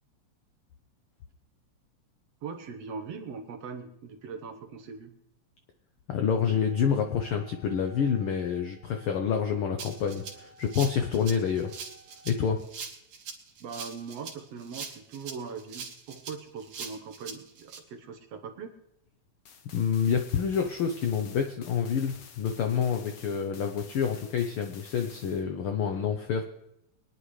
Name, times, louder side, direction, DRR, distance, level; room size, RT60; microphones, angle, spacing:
voice 1, 2.4-5.2 13.6-18.7, right 5 dB, 65° right, 5 dB, 1.9 m, -41 dB
voice 2, 6.1-11.7 12.2-12.6 19.7-26.4, left 7 dB, 75° left, 5 dB, 1.2 m, -28 dB
sound 1, 6.4-12.5, right 4 dB, 15° right, 0.5 m, -55 dB
Rattle (instrument), 9.8-17.8, right 6 dB, 80° right, 3.0 m, -42 dB
sound 2, 19.5-25.4, left 7 dB, 60° left, 1.7 m, -51 dB
23.5 x 10.0 x 3.2 m, 0.81 s
omnidirectional pair, 3.5 m